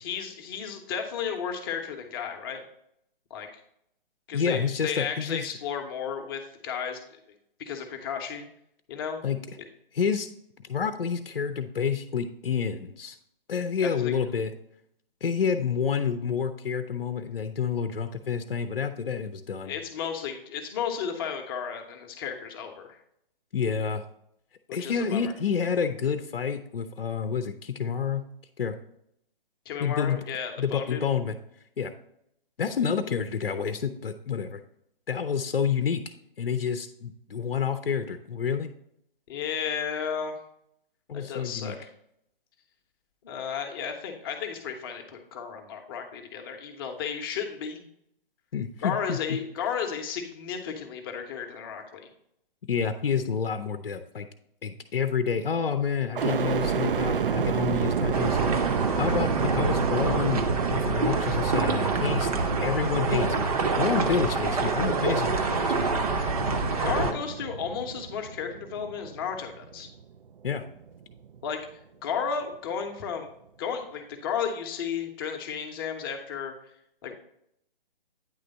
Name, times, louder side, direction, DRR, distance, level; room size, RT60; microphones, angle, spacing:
voice 1, 0.0-2.6 3.3-3.5 4.3-7.2 7.6-8.5 8.9-9.2 13.8-14.1 19.6-23.0 24.7-25.2 29.7-31.0 39.3-40.4 41.1-41.9 43.2-47.8 48.8-52.1 66.8-69.9 71.4-71.7 72.0-73.3 73.6-76.5 77.0-77.1, left 7 dB, 25° left, 4 dB, 0.8 m, -33 dB
voice 2, 4.3-5.5 9.2-9.4 9.9-10.3 10.6-13.2 13.5-14.5 15.2-19.7 23.5-24.0 24.7-28.3 28.6-28.8 29.8-30.2 30.6-31.4 31.8-31.9 32.6-34.6 35.1-36.0 36.4-38.7 41.1-41.8 48.5-49.4 52.7-54.3 54.6-58.5 59.0-65.9 70.4-70.7, left 6 dB, 70° left, 8 dB, 0.6 m, -29 dB
sound 1, 56.1-70.2 70.7-71.4, right 7 dB, 65° right, 0.5 m, -30 dB
sound 2, 58.1-67.1, right 3 dB, 40° right, 0.8 m, -27 dB
9.1 x 3.4 x 3.9 m, 0.75 s
figure-of-eight pair, 135°, 29 cm